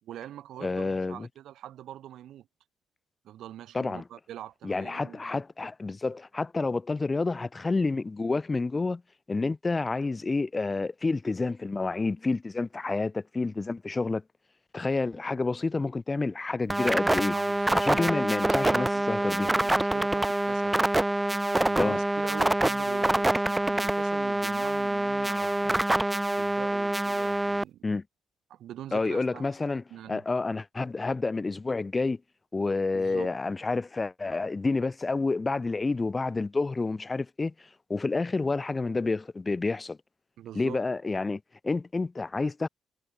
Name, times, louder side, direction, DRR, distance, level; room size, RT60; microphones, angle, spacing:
voice 1, 0.0-2.5 3.2-5.4 17.3-18.1 18.6-20.8 21.5-25.6 26.4-27.8 28.5-29.5 29.9-30.2 32.9-33.3 40.4-40.8, right 12 dB, 75° right, 4.4 m, -43 dB
voice 2, 0.6-1.3 3.7-4.0 4.6-9.0 9.3-14.2 14.7-17.3 17.7-19.5 21.8-22.0 25.2-25.5 27.8-28.0 28.9-29.8 30.1-32.2 32.5-40.0 40.5-42.7, left 3 dB, 25° left, 1.7 m, -29 dB
sound 1, 16.7-27.6, right 1 dB, 10° right, 1.4 m, -26 dB
cardioid pair, 90°, 0 cm